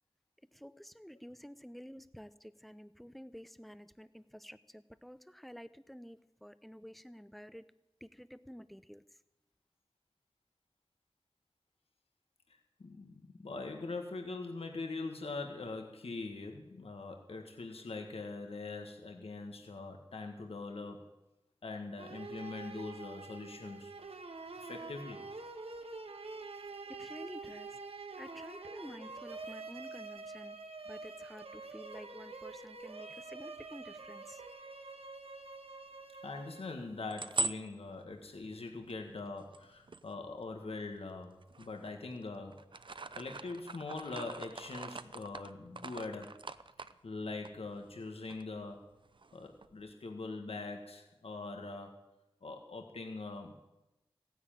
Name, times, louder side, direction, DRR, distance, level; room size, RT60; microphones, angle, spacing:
voice 1, 0.5-7.7 8.0-9.0 26.9-27.8 28.2-30.6 30.8-34.4, equal, ahead, 14 dB, 0.8 m, -50 dB
voice 2, 12.5-21.1 21.6-23.9 24.6-25.3 36.2-42.7 43.1-46.4 47.0-48.9 49.3-52.0 52.4-53.5, left 3 dB, 80° left, 3 dB, 1.7 m, -42 dB
sound 1, 22.0-37.1, right 3 dB, 80° right, 1.5 m, -47 dB
sound 2, 36.9-40.9 41.4-42.2 42.5-48.0 48.3-48.4 48.7-49.9, right 2 dB, 55° right, 0.7 m, -42 dB
15.5 x 10.0 x 8.9 m, 0.97 s
wide cardioid pair, 55°, 10 cm